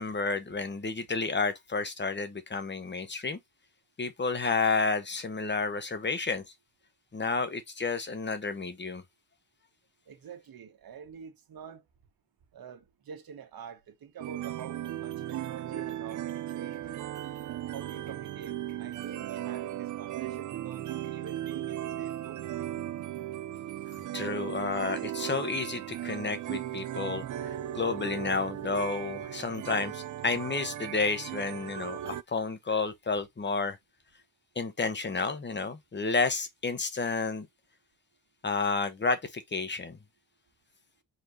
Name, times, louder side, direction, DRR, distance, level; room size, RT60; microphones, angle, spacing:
voice 1, 0.0-3.4 4.0-6.4 7.1-9.0 24.1-33.8 34.6-37.5 38.4-40.0, left 4 dB, 30° left, 1.0 m, -31 dB
voice 2, 10.1-11.8 12.5-17.0 17.7-22.5, right 7 dB, 85° right, 1.4 m, -46 dB
sound 1, 14.2-32.2, right 12 dB, 60° right, 0.4 m, -37 dB
4.8 x 4.0 x 2.7 m
wide cardioid pair, 115°, 35 cm